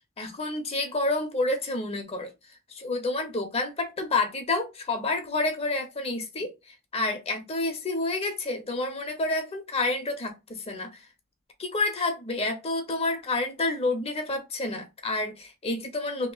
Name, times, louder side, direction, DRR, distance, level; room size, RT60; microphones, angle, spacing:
voice 1, 0.2-2.3 2.7-11.1 11.6-16.3, left 2 dB, 30° left, 0.8 m, -29 dB
3.0 x 2.9 x 3.9 m
head